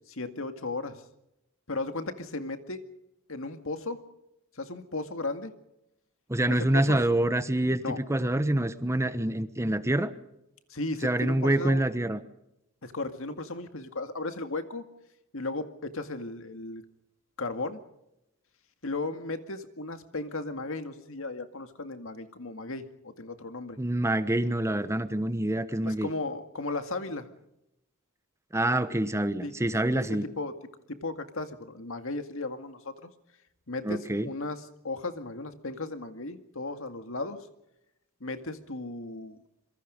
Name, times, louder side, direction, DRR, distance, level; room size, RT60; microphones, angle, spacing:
voice 1, 0.1-1.0 1.7-2.8 3.3-4.0 4.6-5.5 6.5-7.0 7.8-8.0 10.7-11.8 12.8-14.8 15.3-16.8 17.4-17.8 18.8-23.8 25.8-27.3 29.4-29.5 29.9-30.5 30.9-33.1 33.7-37.4 38.2-39.4, left 2 dB, 70° left, 8 dB, 2.1 m, -35 dB
voice 2, 6.3-10.1 11.0-12.2 23.8-26.1 28.5-30.3 33.8-34.3, right 1 dB, 15° right, 12 dB, 1.1 m, -26 dB
26.0 x 23.5 x 5.3 m, 0.84 s
head